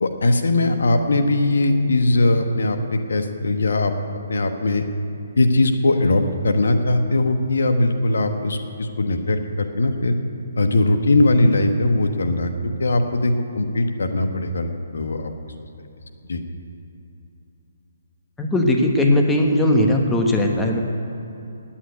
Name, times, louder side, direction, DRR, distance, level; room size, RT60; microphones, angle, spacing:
voice 1, 0.0-3.9 4.3-4.8 5.4-10.1 10.6-15.3 16.3-16.4, left 2 dB, 75° left, 6 dB, 1.1 m, -20 dB
voice 2, 18.4-20.8, left 1 dB, 10° left, 1 dB, 1.1 m, -18 dB
9.8 x 8.7 x 9.5 m, 2.8 s
hypercardioid pair, 150°, 0 cm